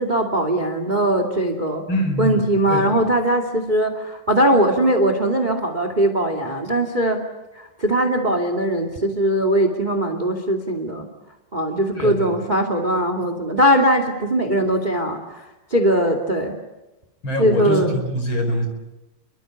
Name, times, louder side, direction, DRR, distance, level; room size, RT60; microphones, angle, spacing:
voice 1, 0.0-1.8 2.2-7.2 7.5-11.1 11.5-16.5 17.4-18.0, right 1 dB, 20° right, 7 dB, 1.4 m, -20 dB
voice 2, 1.9-3.0 11.9-12.4 17.2-18.7, equal, 25° left, 5 dB, 5.4 m, -24 dB
29.5 x 24.0 x 8.4 m, 1.0 s
omnidirectional pair, 5.2 m